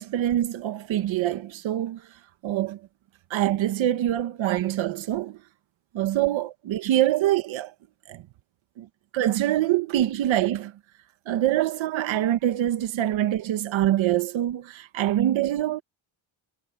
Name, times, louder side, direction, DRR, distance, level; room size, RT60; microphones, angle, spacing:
voice 1, 0.0-2.0 2.4-2.8 3.3-5.4 6.0-7.7 8.1-8.2 8.8-8.9 9.1-10.7 11.3-15.8, right 13 dB, 65° right, 1.6 m, -24 dB
cardioid pair, 175°, 49 cm